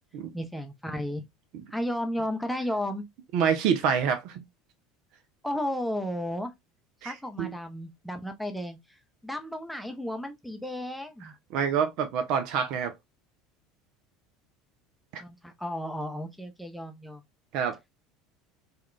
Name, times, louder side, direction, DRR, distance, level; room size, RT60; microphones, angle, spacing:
voice 1, 0.3-1.2 1.7-3.0 5.4-6.5 7.0-8.8 9.2-11.3 15.2-17.2, left 1 dB, ahead, 0.6 m, -33 dB
voice 2, 3.3-4.4 7.0-7.1 7.4-7.5 11.5-12.9 15.1-15.2 17.5-17.8, right 7 dB, 50° right, 0.4 m, -26 dB
3.5 x 2.3 x 2.2 m
figure-of-eight pair, 70°, 0 cm